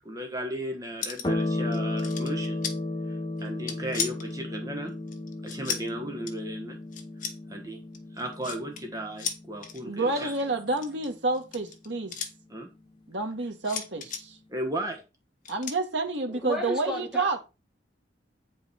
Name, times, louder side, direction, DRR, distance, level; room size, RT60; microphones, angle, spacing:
voice 1, 0.0-2.6 3.1-4.9 5.4-6.8 7.5-7.8 8.1-10.5 12.5-12.7 14.5-15.0, right 1 dB, 20° right, 1.3 m, -35 dB
sound 1, 1.0-1.4 1.7-2.8 3.4-4.3 5.1-5.9 6.3-6.4 6.9-7.4 7.9-8.8 9.2-9.8 10.7-12.3 13.6-14.2 15.4-15.8, left 7 dB, 45° left, 1.3 m, -34 dB
sound 2, 1.2-10.1, left 2 dB, 25° left, 1.2 m, -34 dB
voice 2, 9.9-12.1 13.1-14.4 15.5-17.4, right 3 dB, 80° right, 1.7 m, -29 dB
voice 3, 16.3-17.4, left 1 dB, 5° right, 3.8 m, -33 dB
8.7 x 5.5 x 4.3 m
head